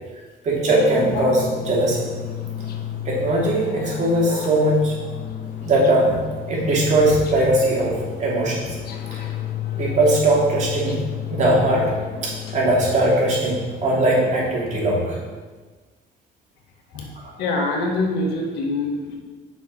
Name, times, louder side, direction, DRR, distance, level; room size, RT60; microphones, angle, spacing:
voice 1, 0.4-2.1 3.0-4.9 5.6-6.2 6.5-8.7 9.8-11.0 11.3-11.9 12.2-15.2, right 1 dB, 45° right, -4 dB, 3.1 m, -20 dB
sound 1, 0.7-14.9, left 9 dB, 65° left, 1.1 m, -32 dB
voice 2, 17.4-19.2, left 2 dB, 85° left, 1 dB, 1.8 m, -24 dB
7.5 x 6.1 x 5.7 m, 1.4 s
cardioid pair, 110°, 17 cm